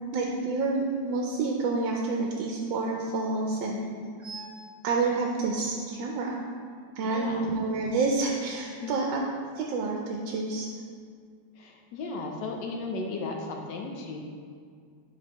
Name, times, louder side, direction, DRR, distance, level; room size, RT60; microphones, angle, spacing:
voice 1, 0.1-3.8 4.8-6.4 7.0-9.2 9.6-10.7, right 3 dB, 80° right, 0 dB, 1.3 m, -28 dB
sound 1, 4.2-4.7 5.9-7.1 8.4-9.3, right 3 dB, ahead, 1.0 m, -48 dB
voice 2, 7.0-7.5 8.8-8.9 11.6-14.2, left 3 dB, 75° left, 1 dB, 1.2 m, -35 dB
7.4 x 4.5 x 2.9 m, 2.2 s
omnidirectional pair, 2.0 m